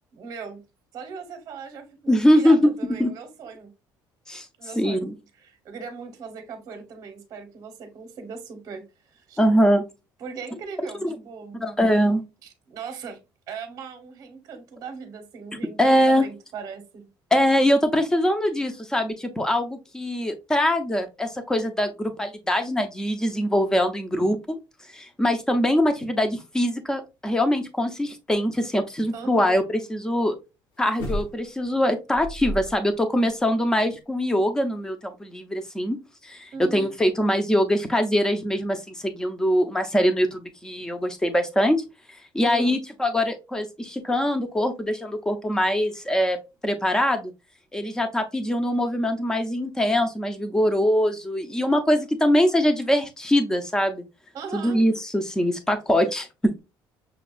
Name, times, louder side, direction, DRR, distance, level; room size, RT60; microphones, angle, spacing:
voice 1, 0.1-0.6 0.9-3.7 4.6-5.1 5.4-9.4 10.2-11.6 12.4-13.2 13.5-17.1 29.1-29.5 36.5-36.9 42.4-42.8 54.3-54.8, right 5 dB, 40° right, 0.8 m, -39 dB
voice 2, 2.1-2.7 3.0-3.1 4.3-4.5 4.8-5.1 9.4-9.8 11.0-11.1 11.6-12.2 15.8-16.3 17.3-24.6 24.9-29.6 29.9-30.4 30.8-36.0 36.2-41.8 42.3-46.4 46.6-47.3 47.7-54.0 54.5-56.6, equal, 5° left, 0.5 m, -23 dB
sound 1, 30.9-31.7 32.1-32.9 33.3-33.4, equal, 65° left, 1.1 m, -32 dB
5.9 x 2.3 x 2.3 m
cardioid pair, 165°, 8 cm